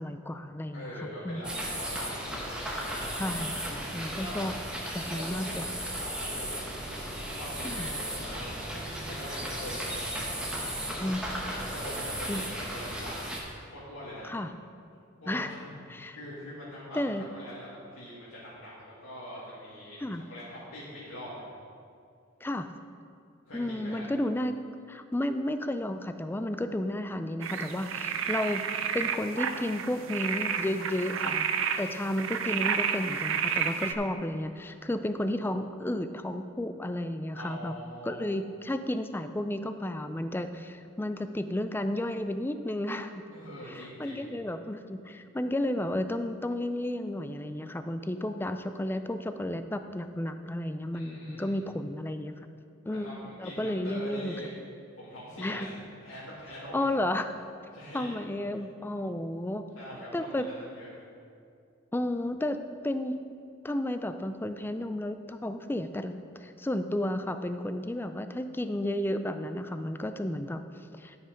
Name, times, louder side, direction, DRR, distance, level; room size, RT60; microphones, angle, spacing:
voice 1, 0.0-1.4 3.2-4.5 4.9-5.7 7.6-7.9 11.0-11.8 12.3-12.4 14.2-14.5 15.3-15.5 15.9-16.2 16.9-17.2 20.0-20.2 22.4-22.7 23.5-28.7 28.9-31.5 31.8-37.7 38.0-43.2 43.7-52.3 52.9-54.3 55.4-55.8 56.7-57.3 57.9-59.6 60.1-60.5 61.9-62.6 62.8-63.2 63.6-70.6 70.9-71.2, left 1 dB, 10° left, 9 dB, 0.3 m, -32 dB
voice 2, 0.7-2.5 4.2-4.5 5.1-9.8 11.5-14.3 15.2-15.8 16.1-17.0 17.3-21.5 23.5-24.0 37.3-38.2 43.3-44.3 50.9-51.6 52.9-54.5 54.9-56.9 57.7-58.2 58.5-58.6 59.7-60.9, equal, 80° left, -10 dB, 2.2 m, -44 dB
sound 1, 1.4-13.4, right 1 dB, 5° right, 1.2 m, -35 dB
sound 2, 27.4-33.9, right 7 dB, 70° right, 0.6 m, -31 dB
12.0 x 5.6 x 5.2 m, 2.4 s
head